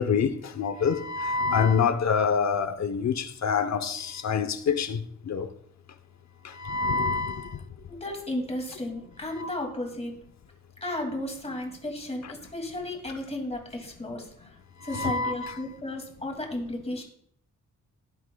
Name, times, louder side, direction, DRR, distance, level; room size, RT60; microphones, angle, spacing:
voice 1, 0.0-5.5 6.4-7.6 9.4-9.5 14.9-15.6, left 5 dB, 55° left, 0.9 m, -26 dB
voice 2, 7.9-10.2 10.8-14.6 14.8-17.0, left 1 dB, 20° left, 2.4 m, -34 dB
17.0 x 8.2 x 2.3 m
wide cardioid pair, 135°, 32 cm